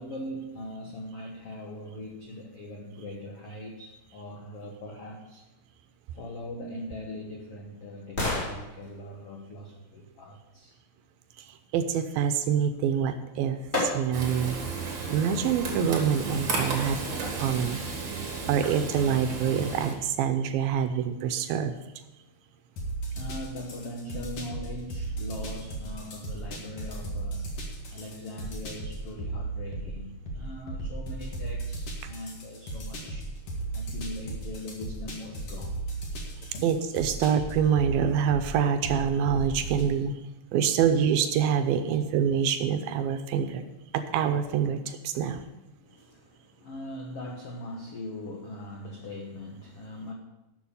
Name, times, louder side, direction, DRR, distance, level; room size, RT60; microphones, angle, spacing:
voice 1, 0.0-5.4 6.1-10.7 23.1-33.3 33.7-35.8 36.5-36.6 40.0-40.1 41.9-42.0 45.8-50.1, left 1 dB, 80° left, 1 dB, 1.3 m, -41 dB
sound 1, 6.6-10.7 12.8-12.9 13.7-14.4 14.9-15.0, left 2 dB, 10° left, 4.5 m, -35 dB
voice 2, 11.4-14.6 14.8-17.0 17.4-17.8 18.5-21.8 36.6-40.1 40.5-43.6 43.9-45.4, right 8 dB, 80° right, 9 dB, 2.3 m, -26 dB
Frying (food), 14.1-19.9, right 4 dB, 40° right, 2.1 m, -33 dB
sound 2, 22.8-39.9, right 2 dB, 45° left, 2.4 m, -36 dB
12.0 x 7.0 x 6.8 m, 0.98 s
omnidirectional pair, 4.5 m